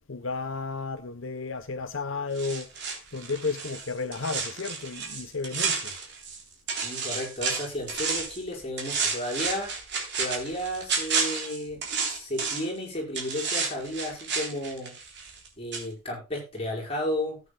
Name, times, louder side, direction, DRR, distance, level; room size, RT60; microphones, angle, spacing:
voice 1, 0.1-2.7 3.1-5.9, left 4 dB, 65° left, 0.8 m, -33 dB
sound 1, 2.4-6.4 6.7-8.4 8.8-12.8 13.1-15.5 15.7-15.8, right 5 dB, 55° right, 3.3 m, -31 dB
voice 2, 6.8-9.7 10.2-11.8 12.1-15.0 15.6-17.4, left 1 dB, 25° left, 5.0 m, -33 dB
17.5 x 8.6 x 2.2 m
head